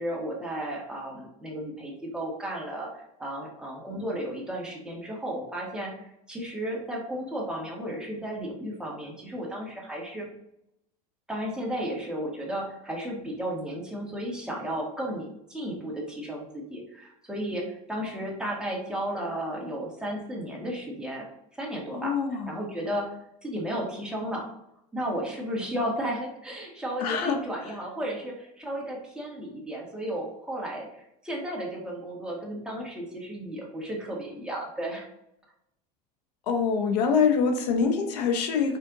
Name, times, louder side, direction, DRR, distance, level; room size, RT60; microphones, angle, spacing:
voice 1, 0.0-5.9 6.3-10.3 11.3-21.3 21.5-22.1 22.5-23.1 23.4-24.5 24.9-35.1, right 1 dB, 5° right, -3 dB, 1.8 m, -34 dB
voice 2, 21.9-22.5 27.0-27.4 36.5-38.8, left 6 dB, 85° left, 5 dB, 1.2 m, -24 dB
5.6 x 4.3 x 3.9 m, 0.80 s
supercardioid pair, 125°, 20 cm